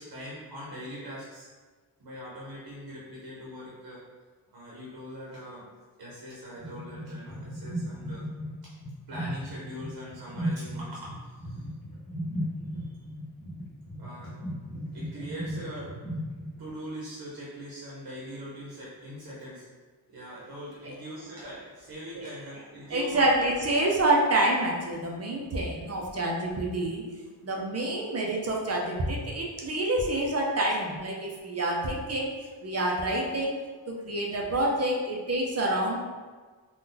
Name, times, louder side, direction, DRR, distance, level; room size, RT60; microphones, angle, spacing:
voice 1, 0.0-1.5 2.0-4.0 4.5-5.7 6.0-8.2 8.6-8.7 9.1-11.7 12.8-13.0 14.0-14.3 14.9-15.9 16.6-19.7 20.1-23.5, equal, 55° right, -6 dB, 0.8 m, -42 dB
sound 1, 6.6-16.7, equal, 45° left, 0.9 m, -36 dB
voice 2, 22.9-27.0 27.4-32.3 32.6-33.5 33.9-36.0, right 1 dB, 35° right, -2 dB, 0.4 m, -27 dB
2.7 x 2.3 x 3.7 m, 1.4 s
wide cardioid pair, 170°, 46 cm